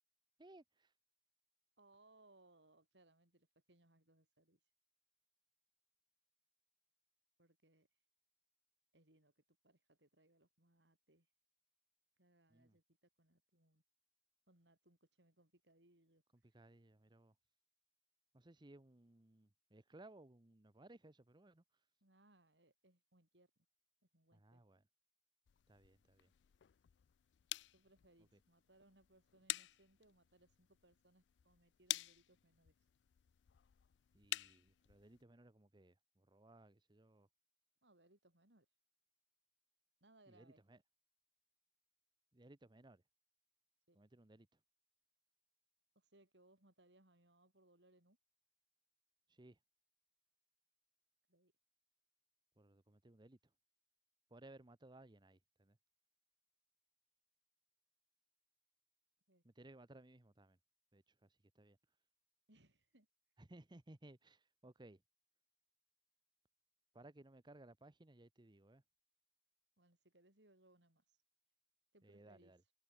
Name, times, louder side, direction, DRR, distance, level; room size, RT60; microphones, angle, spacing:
voice 1, 0.4-0.9 12.5-12.8 16.5-17.3 18.3-21.6 24.3-24.8 25.7-26.3 34.1-37.3 40.3-40.8 42.3-43.0 43.9-44.6 49.3-49.6 52.6-53.4 54.3-55.8 59.4-60.6 60.9-61.8 63.4-65.0 66.9-68.8 72.0-72.6, right 2 dB, 25° right, 0.9 m, -61 dB
voice 2, 1.8-4.6 7.4-7.9 8.9-11.3 12.2-13.8 14.5-16.2 22.0-23.5 24.1-24.6 27.7-32.7 37.8-38.7 40.0-40.6 43.9-44.0 45.9-48.2 51.3-51.5 59.3-59.4 62.5-63.1 69.8-71.2 71.9-72.5, right 2 dB, 85° right, 7.8 m, -71 dB
sound 1, 25.5-35.2, left 16 dB, 85° left, 0.4 m, -49 dB
head